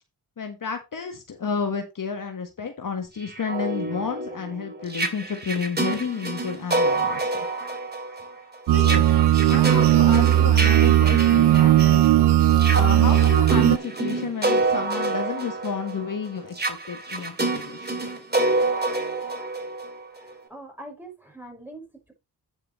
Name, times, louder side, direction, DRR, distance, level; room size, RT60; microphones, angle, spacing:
voice 1, 0.4-7.5 8.7-9.0 9.4-12.0 12.7-18.0, left 5 dB, 50° left, 1.6 m, -31 dB
sound 1, 3.2-12.1 12.5-20.3, right 2 dB, 25° right, 2.5 m, -27 dB
sound 2, 8.7-13.8, right 12 dB, 75° right, 0.6 m, -17 dB
voice 2, 20.1-22.1, right 1 dB, 5° right, 5.4 m, -43 dB
10.0 x 6.4 x 3.2 m
cardioid pair, 80°, 41 cm